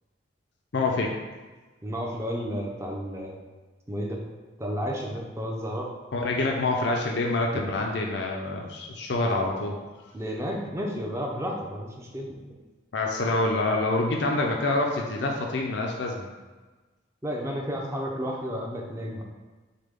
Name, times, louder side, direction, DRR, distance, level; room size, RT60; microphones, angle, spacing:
voice 1, 0.7-1.1 6.1-9.8 12.9-16.3, left 2 dB, 60° left, 0 dB, 0.5 m, -26 dB
voice 2, 1.8-3.4 3.9-4.2 4.6-5.9 7.5-7.6 10.1-12.4 17.2-19.2, equal, 15° right, -1 dB, 0.6 m, -32 dB
6.5 x 2.2 x 3.6 m, 1.3 s
head